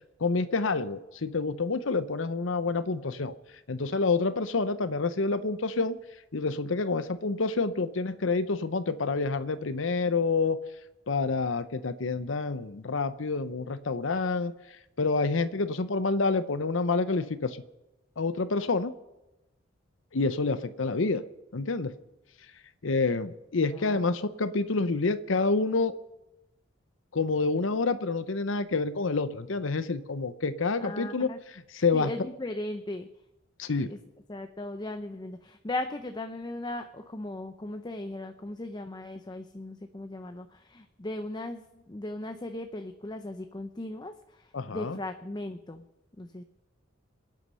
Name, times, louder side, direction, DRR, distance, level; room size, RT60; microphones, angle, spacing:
voice 1, 0.2-3.3 3.7-6.0 6.3-10.6 11.1-14.5 15.0-17.6 18.2-18.9 20.1-21.2 21.5-21.9 22.8-25.9 27.1-31.3 31.7-32.1 33.6-33.9 44.5-45.0, left 3 dB, 80° left, 12 dB, 0.8 m, -28 dB
voice 2, 23.7-24.2 30.8-31.4 31.9-33.1 33.9-34.0 34.3-45.8 46.2-46.4, left 1 dB, 20° left, 7 dB, 0.6 m, -37 dB
26.0 x 9.2 x 5.6 m, 0.98 s
head